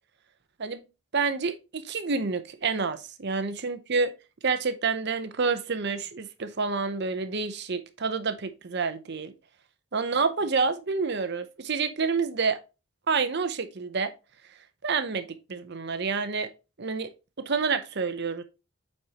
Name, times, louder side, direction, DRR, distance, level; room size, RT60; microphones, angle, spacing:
voice 1, 1.1-4.1 4.4-9.3 9.9-12.6 13.1-14.1 14.8-16.5 16.8-17.1 17.4-18.4, right 4 dB, 50° right, 0.7 m, -28 dB
8.1 x 4.3 x 2.9 m
head